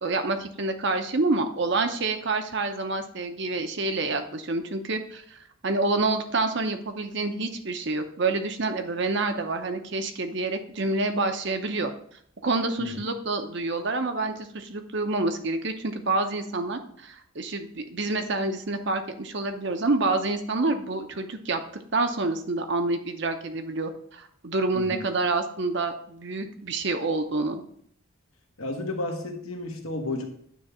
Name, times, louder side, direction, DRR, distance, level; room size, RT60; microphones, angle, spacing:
voice 1, 0.0-11.9 12.4-21.6 21.9-27.6, right 3 dB, 55° right, 7 dB, 0.8 m, -28 dB
voice 2, 28.6-30.2, left 2 dB, 85° left, 2 dB, 1.5 m, -32 dB
9.3 x 3.4 x 6.2 m, 0.64 s
head